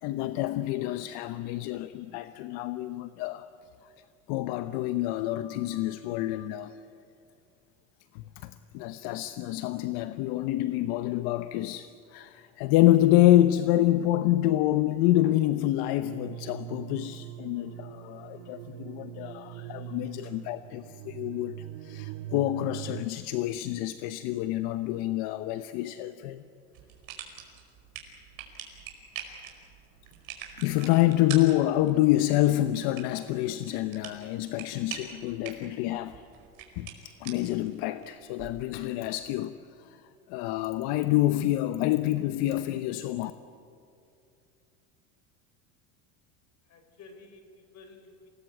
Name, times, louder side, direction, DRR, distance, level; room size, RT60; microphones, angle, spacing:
voice 1, 0.0-3.5 4.3-6.8 8.1-26.4 30.6-36.2 36.8-40.0 40.3-43.3, left 14 dB, 65° left, 0.9 m, -27 dB
sound 1, 16.0-23.0, right 14 dB, 75° right, 1.0 m, -42 dB
sound 2, 26.7-38.6, right 9 dB, 50° right, 5.0 m, -45 dB
voice 2, 46.6-48.3, left 3 dB, 40° left, 4.3 m, -52 dB
27.5 x 19.5 x 8.7 m
supercardioid pair, 130°, 43 cm